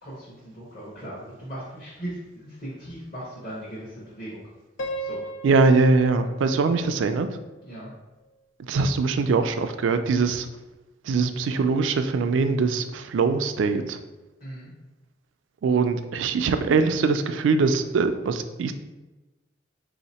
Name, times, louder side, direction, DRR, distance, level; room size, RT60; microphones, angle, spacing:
voice 1, 0.0-4.4 5.0-5.2 7.6-7.9 14.4-14.7, right 1 dB, 45° left, -8 dB, 1.0 m, -38 dB
Piano, 4.8-7.8, right 1 dB, 85° left, 0.4 m, -36 dB
voice 2, 5.4-7.3 8.6-10.5 11.1-14.0 15.6-18.7, right 4 dB, 85° right, 9 dB, 0.3 m, -22 dB
3.4 x 2.8 x 4.2 m, 1.1 s
head